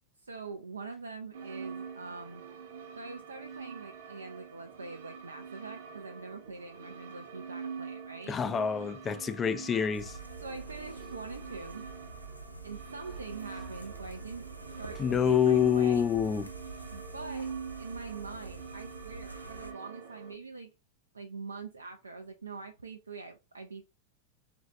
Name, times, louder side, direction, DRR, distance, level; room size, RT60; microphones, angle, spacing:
voice 1, 0.2-2.4 3.0-8.4 10.4-11.9 12.6-14.5 14.8-16.1 16.9-17.5 17.8-20.7 21.1-23.8, right 4 dB, 75° right, 0.4 m, -44 dB
sound 1, 1.3-20.3, right 6 dB, 60° right, 0.9 m, -45 dB
voice 2, 8.3-10.1 15.0-16.5, left 8 dB, 20° left, 0.4 m, -27 dB
sound 2, 9.9-19.7, right 2 dB, 85° left, 0.5 m, -46 dB
4.0 x 2.6 x 3.2 m
figure-of-eight pair, 90°, 0 cm